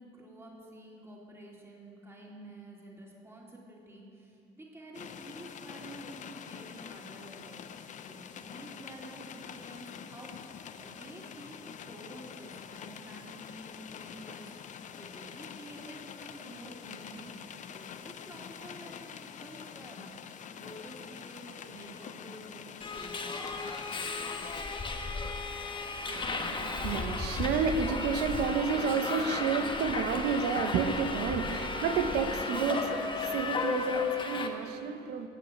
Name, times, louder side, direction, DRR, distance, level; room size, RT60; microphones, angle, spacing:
voice 1, 0.0-11.6 11.8-23.3, right 1 dB, 15° right, -3 dB, 3.2 m, -50 dB
sound 1, 4.9-24.7, left 8 dB, 45° left, 0.7 m, -46 dB
Subway metro underground, 22.8-34.5, left 4 dB, 30° left, 1.3 m, -34 dB
voice 2, 26.1-35.3, right 6 dB, 85° right, 8 dB, 1.1 m, -31 dB
18.0 x 6.8 x 8.7 m, 2.6 s
cardioid pair, 110°, 17 cm